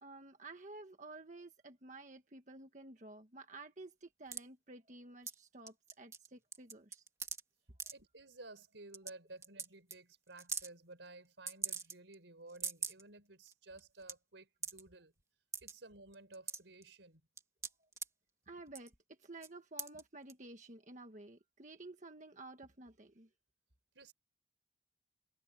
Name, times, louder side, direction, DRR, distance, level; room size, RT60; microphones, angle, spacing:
voice 1, 0.0-7.0 18.5-18.9 19.2-23.3, right 2 dB, 40° right, 1.5 m, -52 dB
sound 1, 4.3-4.4 5.3-5.4 5.7-6.3 6.5-7.4 7.8-7.9 8.6-8.7 8.9-9.1 9.4-9.7 9.9-10.0 10.4-10.7 11.5-12.1 12.5-13.0 13.5-13.6 13.8-14.1 14.6-14.8 15.5-15.7 16.1-16.8 17.4-18.1 18.7-19.0 19.4-19.5 19.8-20.0 20.3-20.4, right 5 dB, 15° right, 2.4 m, -41 dB
voice 2, 7.9-15.1 15.6-17.3 23.9-24.1, right 2 dB, 85° right, 4.5 m, -55 dB
head